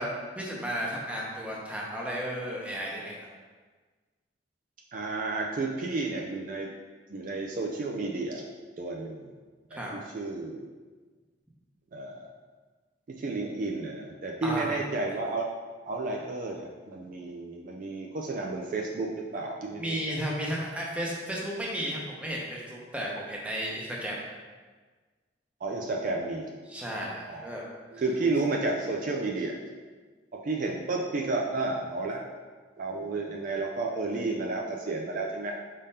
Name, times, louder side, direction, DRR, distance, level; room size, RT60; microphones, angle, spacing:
voice 1, 0.0-3.3 9.7-9.9 14.4-14.8 19.8-24.2 26.7-27.6, equal, 5° right, -3 dB, 0.7 m, -33 dB
voice 2, 4.9-6.7 7.1-8.4 8.8-9.3 9.7-10.7 11.9-12.3 13.1-15.5 15.9-20.2 25.6-26.5 27.3-27.5 27.9-29.6 30.3-32.2 32.8-35.5, right 3 dB, 50° right, 0 dB, 0.4 m, -32 dB
4.9 x 3.6 x 2.8 m, 1.4 s
head